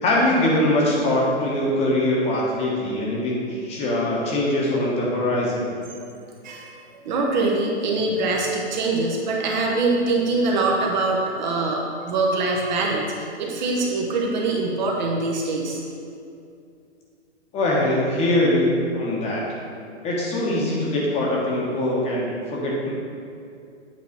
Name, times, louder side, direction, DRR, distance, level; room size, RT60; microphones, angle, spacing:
voice 1, 0.0-5.6 17.5-19.4 20.0-22.9, left 1 dB, 20° left, -4 dB, 1.1 m, -22 dB
voice 2, 6.4-15.8, right 3 dB, 40° right, 0 dB, 0.9 m, -23 dB
8.4 x 4.0 x 4.1 m, 2.4 s
hypercardioid pair, 135°, 36 cm